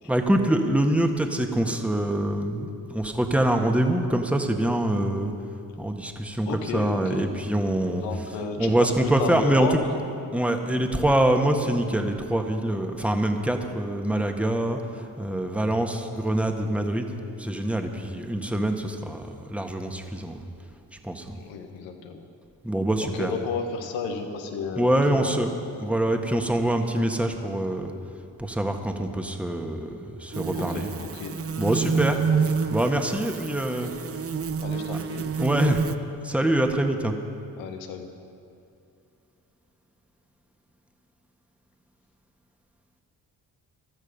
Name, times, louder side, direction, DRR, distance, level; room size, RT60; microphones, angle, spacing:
voice 1, 0.0-5.3 5.8-8.0 8.6-9.8 10.3-20.4 21.0-21.4 22.6-23.3 24.8-25.5 25.8-27.9 28.4-30.9 31.6-32.2 32.7-33.9 34.9-35.0 35.4-35.8 36.2-37.1, right 1 dB, 5° right, 4 dB, 1.6 m, -25 dB
voice 2, 6.4-7.3 7.9-9.8 21.3-22.2 23.0-25.7 30.5-31.3 32.0-32.1 34.6-35.2 37.6-38.1, left 5 dB, 85° left, 5 dB, 1.3 m, -33 dB
sound 1, 30.3-36.0, right 6 dB, 30° right, 0.7 m, -28 dB
16.0 x 12.5 x 5.4 m, 2.5 s
hypercardioid pair, 40°, 44 cm